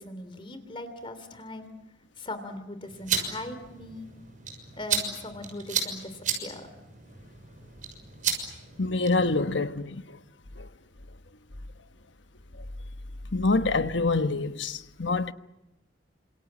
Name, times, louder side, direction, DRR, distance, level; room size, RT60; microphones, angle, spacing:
voice 1, 0.0-1.7 2.2-4.1 4.7-6.7, left 1 dB, 30° left, 3.0 m, -39 dB
sound 1, 2.8-9.4, right 6 dB, 45° right, 6.3 m, -34 dB
voice 2, 8.8-10.0 10.6-10.7 13.3-15.3, left 3 dB, 80° left, 1.2 m, -26 dB
28.5 x 27.0 x 7.5 m
head